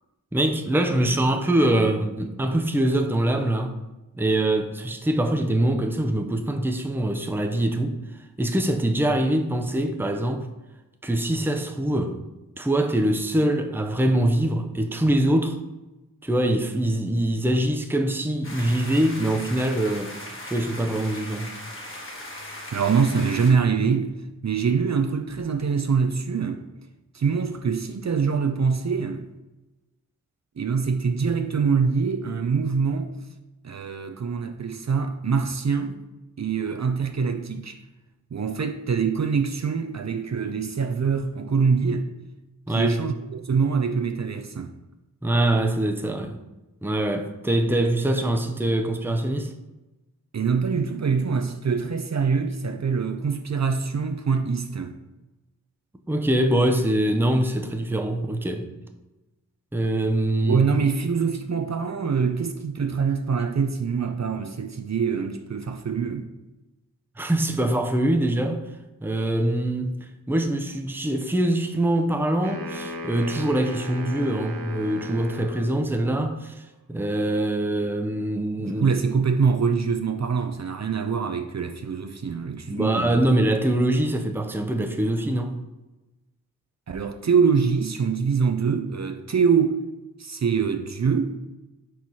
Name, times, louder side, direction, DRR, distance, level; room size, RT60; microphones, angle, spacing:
voice 1, 0.3-3.8 4.2-8.0 8.4-10.5 11.0-12.2 12.6-15.6 16.2-20.1 20.5-21.5 42.7-42.9 45.2-46.4 46.8-49.5 56.1-58.7 59.7-60.6 67.2-68.6 69.0-78.9 82.7-85.6, right 1 dB, 5° right, 0.6 m, -23 dB
sound 1, 18.4-23.5, left 1 dB, 35° left, 1.4 m, -38 dB
voice 2, 22.7-24.1 24.4-26.6 27.1-29.3 30.6-33.1 33.6-36.0 36.4-37.8 38.3-42.1 42.7-44.7 50.3-54.9 60.4-66.3 78.6-83.2 86.9-89.8 90.2-91.4, right 5 dB, 50° right, 0.6 m, -24 dB
sound 2, 72.4-75.8, left 1 dB, 75° right, 0.9 m, -36 dB
4.6 x 4.6 x 5.4 m
wide cardioid pair, 75°, 35 cm